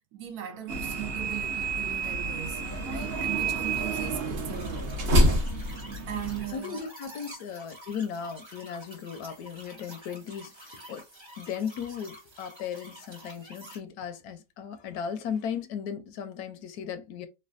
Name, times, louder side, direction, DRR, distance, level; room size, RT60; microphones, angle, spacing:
voice 1, 0.0-2.6 2.9-4.9 5.3-5.4 6.1-6.9, right 11 dB, 75° right, 1.1 m, -39 dB
sound 1, 0.7-6.5, right 1 dB, 50° right, 0.8 m, -28 dB
sound 2, 4.4-13.8, equal, 20° right, 0.8 m, -48 dB
voice 2, 6.5-11.1 11.4-17.3, left 7 dB, 75° left, 1.1 m, -36 dB
3.2 x 2.2 x 2.4 m
omnidirectional pair, 1.7 m